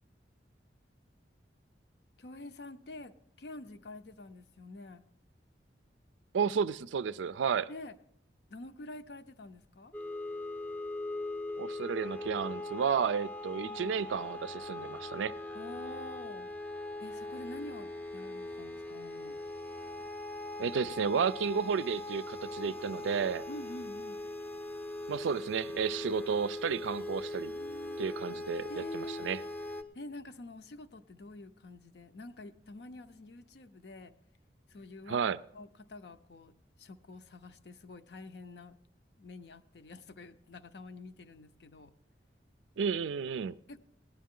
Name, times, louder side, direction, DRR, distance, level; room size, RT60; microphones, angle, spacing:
voice 1, 2.2-5.0 7.7-8.0 8.5-9.9 13.6-13.9 15.5-16.5 17.0-19.4 23.5-24.2 26.9-27.1 27.5-28.1 28.7-29.5 29.9-34.2 34.7-38.8 39.2-41.9 43.7-43.8, left 2 dB, 65° left, 0.6 m, -47 dB
voice 2, 6.3-7.7 11.6-15.3 20.6-23.5 25.1-27.5 28.0-29.4 35.1-35.4 42.8-43.6, right 6 dB, 90° right, 0.4 m, -32 dB
sound 1, 9.9-29.8, left 2 dB, 10° left, 0.5 m, -40 dB
17.5 x 10.5 x 3.7 m
head